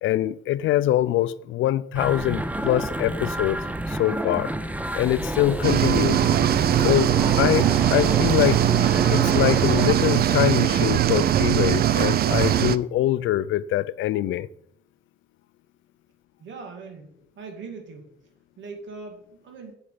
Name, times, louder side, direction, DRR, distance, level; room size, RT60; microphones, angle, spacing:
voice 1, 0.0-3.6 3.9-4.5 4.9-6.2 6.8-8.7 9.1-14.5, left 13 dB, 75° left, 0.4 m, -24 dB
sound 1, 1.9-9.8, right 1 dB, 5° right, 0.6 m, -30 dB
sound 2, 4.8-11.4, left 1 dB, 10° left, 3.0 m, -48 dB
sound 3, 5.6-12.8, right 11 dB, 50° right, 0.4 m, -20 dB
voice 2, 16.4-18.1 18.6-19.8, right 4 dB, 70° right, 2.3 m, -40 dB
8.0 x 5.6 x 4.9 m
cardioid pair, 90°, 20 cm